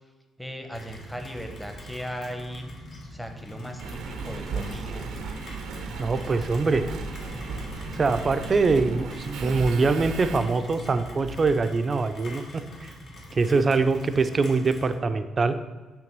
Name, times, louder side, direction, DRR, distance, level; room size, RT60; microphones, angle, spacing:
voice 1, 0.4-2.7 3.1-5.1, equal, 5° left, 5 dB, 0.9 m, -37 dB
Rain, 0.7-14.9, left 1 dB, 60° left, 1.6 m, -43 dB
Engine, 3.8-11.7 12.3-12.4, right 4 dB, 85° right, 0.7 m, -36 dB
voice 2, 6.0-6.9 7.9-12.9 13.3-15.6, right 4 dB, 35° right, 9 dB, 0.5 m, -23 dB
6.0 x 3.4 x 6.0 m, 1.3 s
cardioid pair, 90°, 0 cm